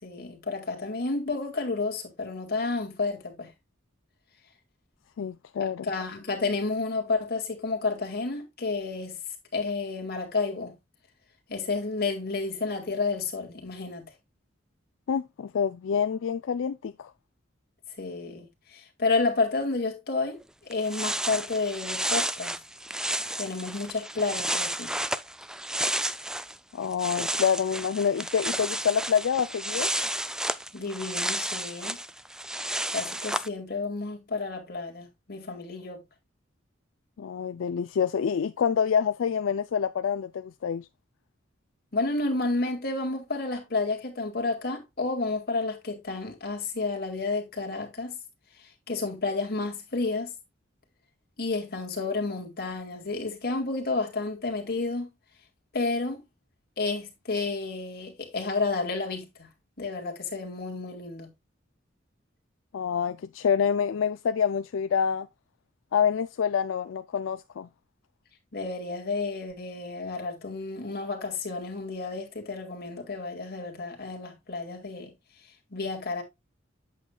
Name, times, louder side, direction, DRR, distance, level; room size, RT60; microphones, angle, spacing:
voice 1, 0.0-3.5 5.6-9.2 9.5-10.8 11.5-14.1 18.0-22.5 23.4-24.9 30.5-32.0 32.9-36.0 41.9-48.2 48.9-50.3 51.4-55.1 55.7-56.2 56.8-59.5 59.8-61.3 68.5-75.1 75.7-76.2, left 3 dB, 55° left, 2.1 m, -31 dB
voice 2, 5.2-5.9 15.1-17.1 26.7-29.9 37.2-40.9 62.7-65.3 65.9-67.7, left 7 dB, 80° left, 0.4 m, -27 dB
sound 1, 20.4-20.5 20.7-26.6 26.8-33.5, right 1 dB, 5° right, 0.3 m, -32 dB
8.3 x 7.3 x 2.3 m
head